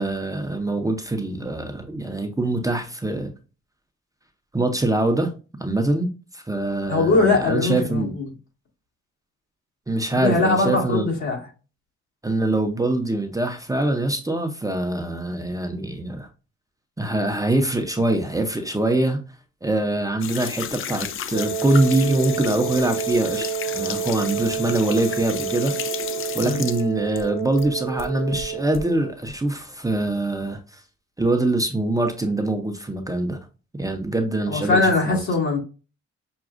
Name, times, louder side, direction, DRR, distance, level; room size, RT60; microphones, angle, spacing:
voice 1, 0.0-3.3 4.5-5.3 5.6-8.1 9.9-11.1 12.2-16.3 17.0-19.2 19.6-25.7 26.3-30.8 31.2-33.4 33.8-35.2, right 2 dB, 10° right, 0.6 m, -24 dB
voice 2, 6.9-8.3 10.2-11.4 26.4-26.6 34.5-35.6, left 3 dB, 65° left, 2.0 m, -21 dB
sound 1, 20.2-27.7 28.0-28.8, left 8 dB, 45° left, 0.4 m, -33 dB
Wind instrument woodwind instrument, 21.3-29.2, right 7 dB, 70° right, 0.7 m, -29 dB
6.0 x 2.3 x 2.5 m
cardioid pair, 90°, 30 cm